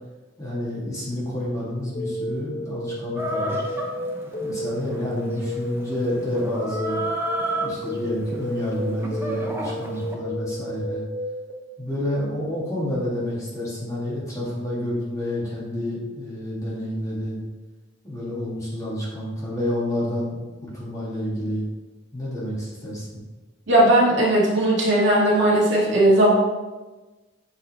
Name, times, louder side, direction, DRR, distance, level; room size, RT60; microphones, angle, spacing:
voice 1, 0.4-3.6 4.4-7.0 7.6-11.0 11.8-17.4 18.0-21.6 22.1-23.1, left 1 dB, 15° left, -6 dB, 1.9 m, -29 dB
sound 1, 1.9-11.5, equal, 40° left, 1.0 m, -32 dB
Chicken rooster, 3.2-10.2, right 1 dB, 10° right, 0.7 m, -32 dB
voice 2, 23.7-26.3, right 1 dB, 65° right, -5 dB, 1.9 m, -17 dB
7.2 x 4.1 x 4.1 m, 1.2 s
head